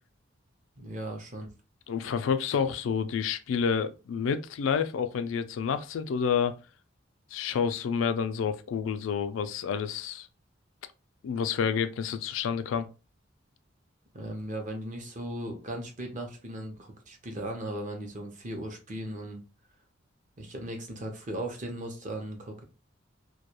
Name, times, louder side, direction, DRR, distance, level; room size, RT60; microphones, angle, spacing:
voice 1, 0.8-1.5 14.1-19.4 20.4-22.6, right 1 dB, 40° right, 0.7 m, -37 dB
voice 2, 1.9-6.6 7.3-10.3 11.2-12.9, left 6 dB, 85° left, 0.3 m, -29 dB
2.2 x 2.2 x 2.9 m
head